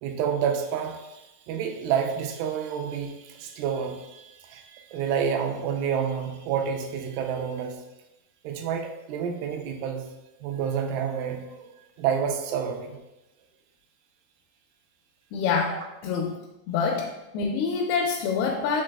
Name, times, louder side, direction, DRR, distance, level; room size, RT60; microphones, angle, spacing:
voice 1, 0.0-7.8 8.4-10.1 10.4-13.0 15.7-15.9, right 7 dB, 80° right, 3 dB, 2.2 m, -29 dB
voice 2, 15.3-16.4 16.7-18.8, left 5 dB, 85° left, 0 dB, 2.4 m, -26 dB
6.2 x 3.9 x 2.2 m, 0.98 s
omnidirectional pair, 4.3 m